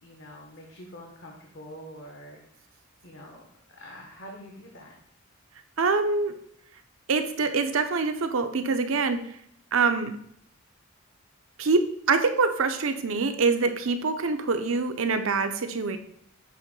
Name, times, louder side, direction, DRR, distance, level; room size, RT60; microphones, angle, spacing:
voice 1, 0.0-2.4 3.0-3.5 3.8-4.9, equal, 55° left, -1 dB, 1.0 m, -45 dB
voice 2, 5.8-6.3 7.1-9.4 9.7-10.1 11.6-16.0, right 4 dB, 70° right, 9 dB, 0.6 m, -25 dB
7.7 x 3.1 x 5.3 m, 0.69 s
head